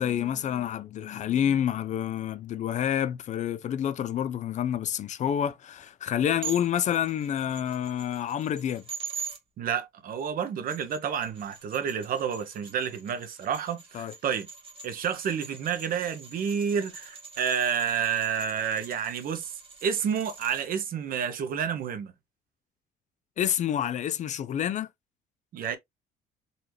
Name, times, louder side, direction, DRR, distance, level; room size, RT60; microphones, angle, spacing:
voice 1, 0.0-8.8 13.9-14.1 23.4-24.9, left 10 dB, 45° left, 0.4 m, -28 dB
sound 1, 6.4-9.4 10.5-20.7, right 5 dB, 35° right, 1.5 m, -43 dB
voice 2, 9.6-14.5 14.8-19.5 19.8-22.1 25.5-25.8, right 7 dB, 55° right, 0.9 m, -29 dB
4.0 x 2.8 x 3.1 m
cardioid pair, 110°, 17 cm